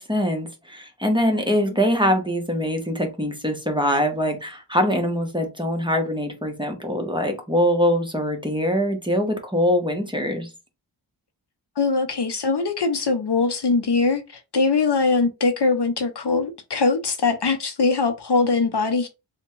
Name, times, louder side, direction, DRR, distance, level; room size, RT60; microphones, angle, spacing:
voice 1, 0.0-10.5, equal, 10° right, 0.8 m, -23 dB
voice 2, 11.8-19.1, left 4 dB, 55° left, 0.6 m, -22 dB
3.4 x 2.2 x 3.0 m
wide cardioid pair, 50°, 49 cm